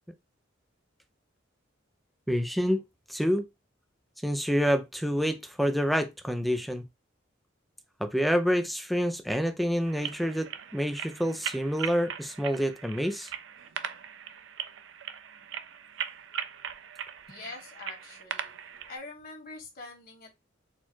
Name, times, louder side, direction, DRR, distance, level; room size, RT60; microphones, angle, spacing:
voice 1, 2.3-2.8 3.1-3.4 4.2-6.8 8.0-13.3, equal, ahead, 0.4 m, -27 dB
sound 1, 9.9-19.0, right 8 dB, 75° right, 0.5 m, -39 dB
voice 2, 17.3-18.6 18.9-20.3, left 3 dB, 50° left, 1.7 m, -44 dB
4.4 x 2.3 x 4.3 m
head